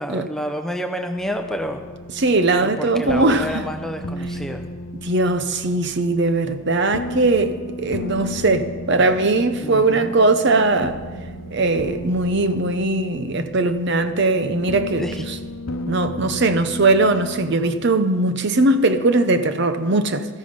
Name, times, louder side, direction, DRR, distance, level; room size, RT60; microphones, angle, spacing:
voice 1, 0.0-1.8 2.6-4.7 9.6-10.1 15.0-15.2, equal, ahead, 5 dB, 0.8 m, -29 dB
sound 1, 1.2-17.6, left 1 dB, 70° left, 0.9 m, -34 dB
voice 2, 2.2-3.5 5.0-11.0 11.5-15.0 15.9-20.3, right 2 dB, 55° right, 9 dB, 0.8 m, -19 dB
14.0 x 13.5 x 5.3 m, 1.4 s
head